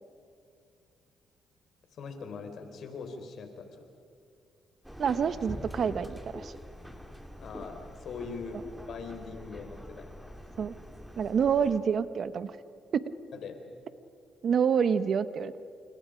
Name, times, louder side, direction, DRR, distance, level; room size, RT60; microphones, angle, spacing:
voice 1, 2.0-3.7 7.4-8.6 8.9-10.1 13.3-13.6, left 5 dB, 65° left, 5 dB, 4.4 m, -41 dB
Subway metro underground, 4.8-11.8, equal, ahead, 2.7 m, -45 dB
voice 2, 5.0-6.5 10.6-10.7 11.2-12.6 12.9-13.1 14.4-15.5, right 7 dB, 55° right, 13 dB, 1.1 m, -27 dB
30.0 x 29.0 x 5.2 m, 2.3 s
cardioid pair, 90°, 0 cm